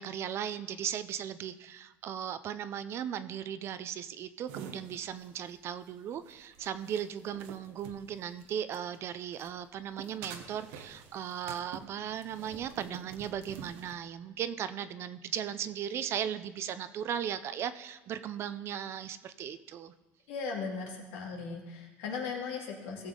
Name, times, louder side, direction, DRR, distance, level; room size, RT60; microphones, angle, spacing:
voice 1, 0.0-19.9, right 9 dB, 45° right, 13 dB, 0.6 m, -37 dB
sound 1, 4.5-9.0 9.3-14.0, right 7 dB, 90° right, 1.1 m, -48 dB
voice 2, 20.3-23.1, left 5 dB, 90° left, 0 dB, 2.4 m, -37 dB
17.0 x 7.0 x 3.8 m, 1.2 s
cardioid pair, 120°, 6 cm